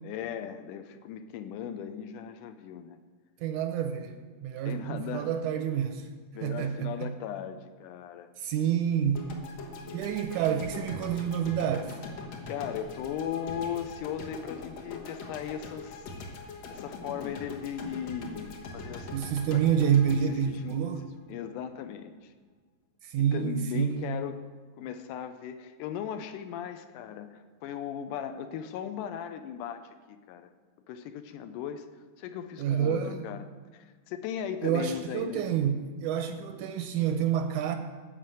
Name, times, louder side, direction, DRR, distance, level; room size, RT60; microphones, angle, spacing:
voice 1, 0.0-3.0 4.6-5.3 6.3-8.3 9.8-10.1 12.5-16.1 16.7-19.1 19.5-19.6 20.1-20.8 21.3-22.3 23.3-24.4 24.8-30.5 30.9-31.9 32.2-33.5 33.7-35.4, left 9 dB, 80° left, 2.1 m, -37 dB
voice 2, 3.4-4.1 4.4-6.1 6.4-7.1 8.4-9.3 9.9-12.0 19.1-21.0 23.0-24.2 32.6-33.3 34.6-37.8, right 8 dB, 80° right, 1.9 m, -28 dB
sound 1, 9.1-21.4, left 3 dB, 60° left, 2.1 m, -42 dB
13.0 x 5.0 x 7.7 m
omnidirectional pair, 3.8 m